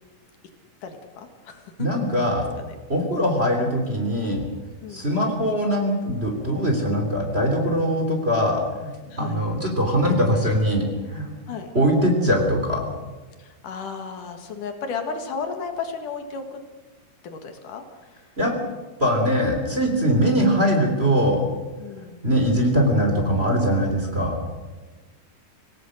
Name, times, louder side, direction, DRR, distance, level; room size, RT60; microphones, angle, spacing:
voice 1, 0.8-1.9 2.3-2.4 2.7-2.8 3.1-3.3 4.8-5.1 9.1-9.4 11.5-11.7 13.4-16.6 17.2-18.2 20.0-20.2 21.8-22.2, left 5 dB, 65° left, 5 dB, 3.2 m, -34 dB
voice 2, 1.8-2.5 2.9-4.4 4.9-8.9 9.2-11.3 11.7-12.8 18.4-18.5 19.0-21.4 22.2-24.4, equal, 20° right, 2 dB, 3.2 m, -21 dB
27.5 x 17.5 x 6.4 m, 1.2 s
omnidirectional pair, 4.0 m